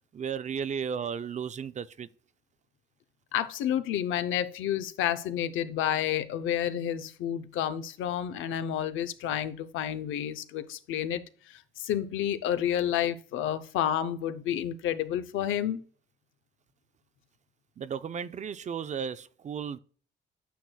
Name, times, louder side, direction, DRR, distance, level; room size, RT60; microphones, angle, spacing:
voice 1, 0.1-2.1 17.8-19.8, right 7 dB, 35° right, 0.4 m, -34 dB
voice 2, 3.3-15.8, left 10 dB, 85° left, 0.6 m, -30 dB
9.2 x 6.1 x 2.3 m
cardioid pair, 90°, 20 cm